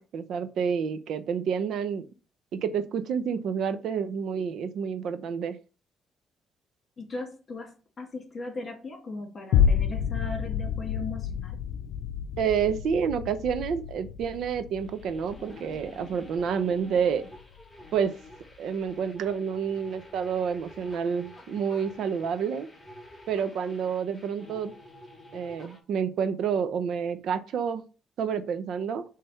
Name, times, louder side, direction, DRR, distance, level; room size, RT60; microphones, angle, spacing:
voice 1, 0.1-2.1 2.5-5.6 12.4-17.3 17.9-18.2 18.6-22.7 23.3-24.7 25.3-27.9 28.2-29.0, right 7 dB, 75° right, 11 dB, 0.8 m, -29 dB
voice 2, 7.0-11.6, left 3 dB, 40° left, 2 dB, 2.5 m, -38 dB
sound 1, 9.5-18.1 18.6-18.7, left 8 dB, 90° left, 0.4 m, -30 dB
sound 2, 14.8-25.8, left 1 dB, 15° left, 2.0 m, -49 dB
5.6 x 3.4 x 5.5 m, 0.36 s
cardioid pair, 90°, 0 cm